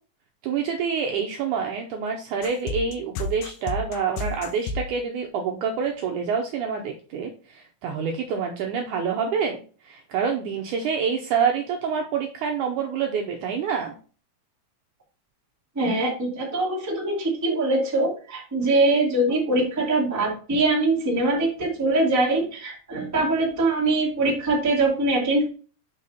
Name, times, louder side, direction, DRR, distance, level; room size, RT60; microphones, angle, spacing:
voice 1, 0.4-14.0, right 6 dB, 80° right, 2 dB, 1.8 m, -27 dB
sound 1, 2.4-4.9, left 3 dB, 80° left, 1.9 m, -31 dB
voice 2, 15.7-25.5, right 2 dB, 10° right, -3 dB, 0.7 m, -23 dB
5.7 x 4.1 x 5.2 m, 0.38 s
omnidirectional pair, 4.2 m